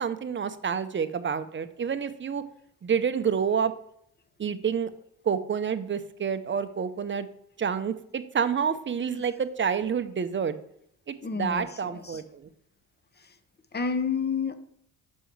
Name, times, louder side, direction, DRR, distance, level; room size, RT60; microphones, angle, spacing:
voice 1, 0.0-2.4 2.8-3.7 4.4-4.9 5.2-7.3 7.6-10.6 11.1-12.5, right 7 dB, 25° right, 12 dB, 0.6 m, -28 dB
voice 2, 11.2-12.2 13.7-14.5, left 5 dB, 20° left, 9 dB, 0.9 m, -30 dB
5.5 x 5.3 x 4.7 m, 0.71 s
hypercardioid pair, 55°, 46 cm